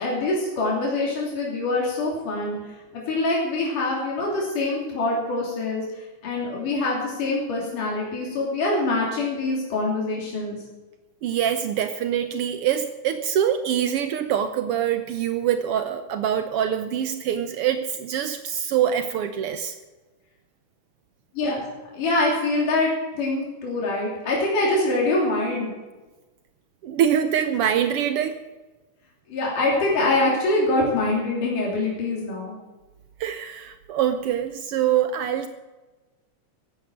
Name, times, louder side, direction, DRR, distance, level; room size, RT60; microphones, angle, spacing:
voice 1, 0.0-2.6 3.1-10.6 21.3-21.7 21.9-25.7 29.3-32.5, left 2 dB, 90° left, -3 dB, 4.7 m, -24 dB
voice 2, 11.2-19.8 26.8-28.4 33.2-35.5, right 9 dB, 90° right, 8 dB, 1.2 m, -24 dB
15.0 x 10.5 x 6.3 m, 1.2 s
omnidirectional pair, 3.5 m